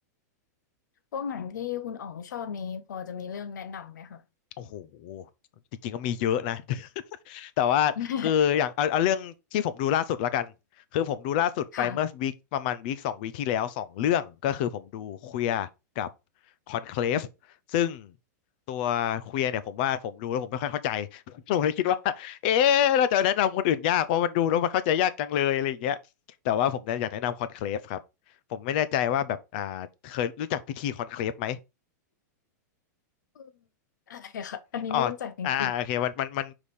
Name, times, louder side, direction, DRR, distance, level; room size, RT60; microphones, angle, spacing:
voice 1, 1.1-4.2 8.0-8.3 11.7-12.0 33.3-33.5 34.1-35.7, left 8 dB, 85° left, 1.0 m, -35 dB
voice 2, 4.6-5.2 5.8-6.9 7.3-7.9 8.2-10.5 10.9-15.7 16.0-16.1 16.7-17.3 17.7-18.1 18.7-26.0 26.4-28.0 28.5-31.6 34.9-35.1 35.4-36.5, left 10 dB, 30° left, 0.5 m, -27 dB
5.3 x 4.9 x 4.2 m
supercardioid pair, 180°, 10 cm